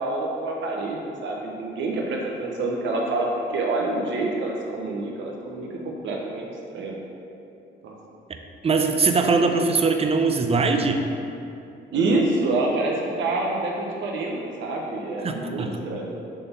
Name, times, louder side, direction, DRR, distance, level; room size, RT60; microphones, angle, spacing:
voice 1, 0.0-6.5 6.7-7.0 7.8-7.9 11.9-16.1, right 2 dB, 70° right, -1 dB, 1.0 m, -27 dB
voice 2, 8.6-11.0 15.2-15.7, right 4 dB, 30° right, 5 dB, 0.6 m, -21 dB
6.7 x 3.5 x 5.5 m, 2.7 s
cardioid pair, 90°, 20 cm